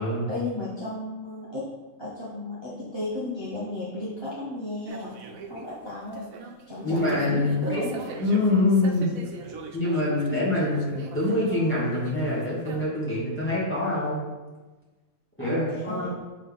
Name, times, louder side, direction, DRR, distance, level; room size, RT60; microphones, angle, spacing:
voice 1, 0.3-1.7 2.0-5.2 5.5-6.3 6.7-8.0 15.4-16.1, left 2 dB, 20° right, -10 dB, 1.2 m, -34 dB
sound 1, 4.9-12.9, right 4 dB, 90° right, 1.1 m, -40 dB
voice 2, 6.8-7.9 8.2-9.1 9.7-14.2 15.4-16.1, left 2 dB, 10° left, -8 dB, 1.9 m, -25 dB
7.3 x 3.9 x 3.5 m, 1.2 s
omnidirectional pair, 1.4 m